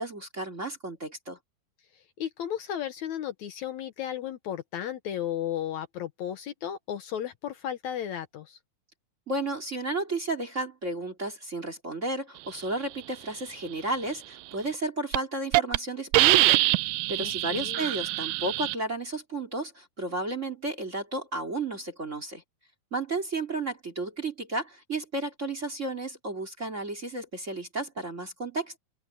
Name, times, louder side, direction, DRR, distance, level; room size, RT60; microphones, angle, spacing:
voice 1, 0.0-1.4 9.3-22.4 22.9-28.8, right 2 dB, 25° right, 2.2 m, -33 dB
voice 2, 2.2-8.6 17.2-17.9, left 10 dB, 70° left, 1.8 m, -34 dB
Hiss, 14.5-14.8 15.1-15.2 15.5-15.8 16.1-18.7, right 19 dB, 80° right, 2.1 m, -23 dB
omnidirectional pair, 4.4 m